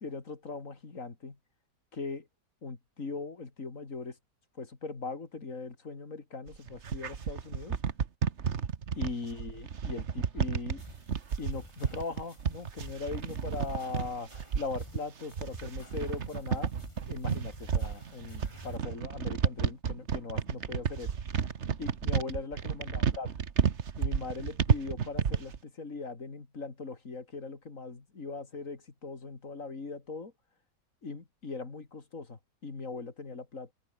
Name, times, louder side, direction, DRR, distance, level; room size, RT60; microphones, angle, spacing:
voice 1, 0.0-1.4 1.9-2.3 2.6-4.2 4.6-7.8 8.9-10.8 11.4-16.7 17.1-21.1 21.8-23.3 24.0-30.3 31.0-33.7, left 4 dB, 50° left, 3.0 m, -40 dB
sound 1, 6.5-25.6, right 7 dB, 45° right, 1.4 m, -31 dB
sound 2, 10.8-18.8, left 1 dB, 15° left, 6.8 m, -53 dB
open air
omnidirectional pair, 1.8 m